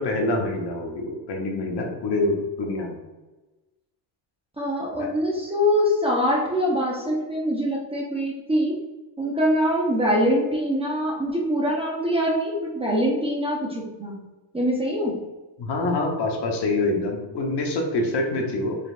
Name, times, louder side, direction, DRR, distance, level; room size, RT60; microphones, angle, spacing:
voice 1, 0.0-3.0 5.0-5.1 15.6-18.8, left 2 dB, 55° left, 1 dB, 0.9 m, -26 dB
voice 2, 4.6-8.8 9.2-14.1 14.5-15.2, equal, 10° right, -3 dB, 0.7 m, -24 dB
5.2 x 3.2 x 2.4 m, 1.1 s
cardioid pair, 135°, 49 cm